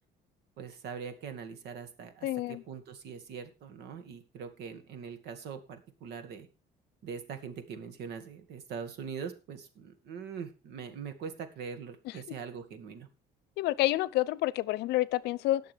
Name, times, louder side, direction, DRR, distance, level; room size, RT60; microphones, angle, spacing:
voice 1, 0.6-6.5 7.0-13.1, right 6 dB, 75° right, 2.1 m, -42 dB
voice 2, 2.2-2.6 13.6-15.6, left 16 dB, 85° left, 0.6 m, -28 dB
19.5 x 6.7 x 3.5 m
cardioid pair, 110°, 17 cm